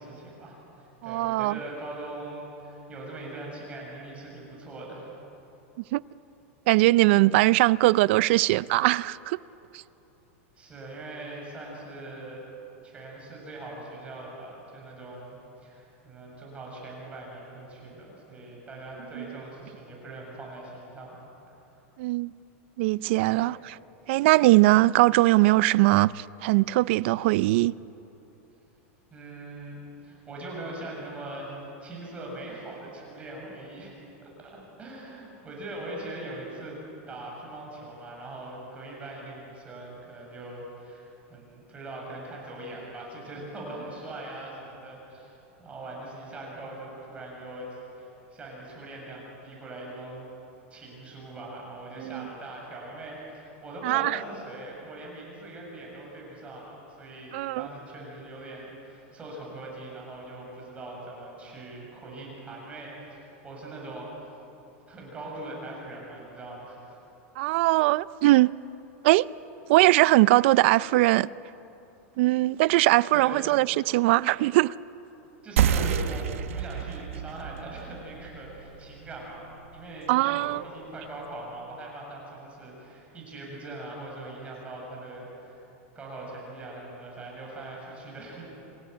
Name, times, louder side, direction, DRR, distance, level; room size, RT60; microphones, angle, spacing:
voice 1, 0.0-5.1 10.6-12.5 12.8-21.2 23.2-23.5 29.1-33.9 34.2-36.8 37.1-50.3 50.7-64.2 64.9-67.0 73.1-73.5 75.4-85.6 85.9-88.4, right 2 dB, 15° right, 7.6 m, -41 dB
voice 2, 1.0-1.6 5.9-6.0 6.7-9.4 9.7-9.8 19.2-19.3 22.0-22.3 22.8-23.8 24.1-27.8 52.0-52.3 53.8-54.2 57.3-57.7 67.4-68.5 69.0-69.3 69.7-71.3 72.2-74.7 80.1-80.6, right 19 dB, 60° right, 0.4 m, -21 dB
sound 1, 75.6-80.7, right 9 dB, 85° right, 1.2 m, -30 dB
27.0 x 16.5 x 9.5 m
supercardioid pair, 145°, 7 cm